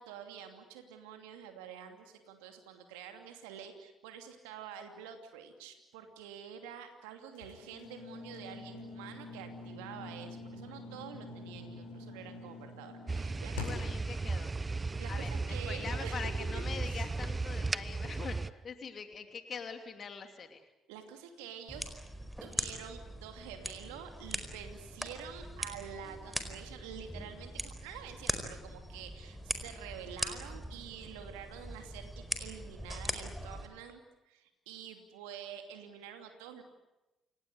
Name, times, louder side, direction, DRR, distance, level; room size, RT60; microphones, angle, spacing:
voice 1, 0.0-13.7 15.0-16.2 16.5-17.1 20.9-21.9 22.4-34.0 34.3-36.6, right 8 dB, 80° right, 6 dB, 2.7 m, -48 dB
sound 1, 7.3-14.0, left 3 dB, 80° left, 7.5 m, -46 dB
sound 2, 13.1-18.5, right 3 dB, 25° right, 0.9 m, -35 dB
voice 2, 13.5-14.6 15.1-20.7, left 6 dB, 50° left, 7 dB, 2.7 m, -43 dB
sound 3, 21.7-33.7, equal, 5° right, 4.6 m, -41 dB
28.5 x 18.0 x 9.8 m, 0.98 s
hypercardioid pair, 45°, 0 cm